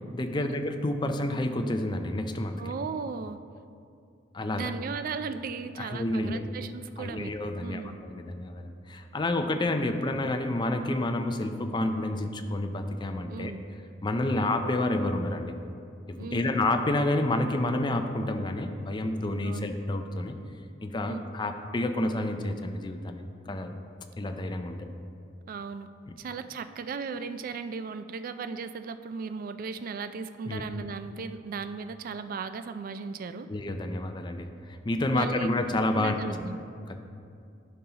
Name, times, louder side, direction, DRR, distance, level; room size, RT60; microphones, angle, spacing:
voice 1, 0.1-2.7 4.3-4.7 5.8-6.4 7.0-13.5 14.0-15.5 16.1-20.4 20.8-23.2 23.5-23.8 24.2-24.9 26.1-26.2 30.4-30.6 33.5-36.2 36.5-37.0, left 1 dB, 25° left, 6 dB, 0.4 m, -29 dB
voice 2, 2.6-3.4 4.5-8.0 13.3-13.6 14.3-14.5 16.2-16.6 19.4-19.7 21.1-21.2 25.5-25.9 26.2-33.5 35.1-35.5 35.9-36.6, right 5 dB, 45° right, 10 dB, 0.3 m, -36 dB
11.0 x 5.5 x 2.8 m, 2.4 s
head